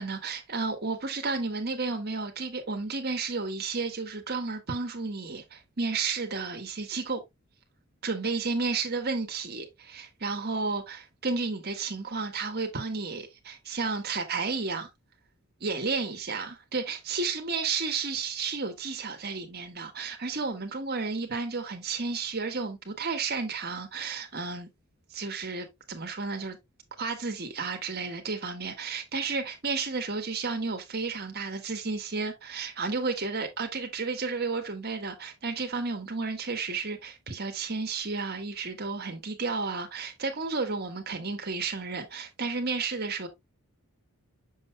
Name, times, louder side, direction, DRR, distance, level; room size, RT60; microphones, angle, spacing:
voice 1, 0.0-7.2 8.0-14.9 15.6-24.7 25.1-26.6 27.0-43.3, right 4 dB, 45° right, 1.6 m, -32 dB
6.9 x 6.3 x 2.3 m
head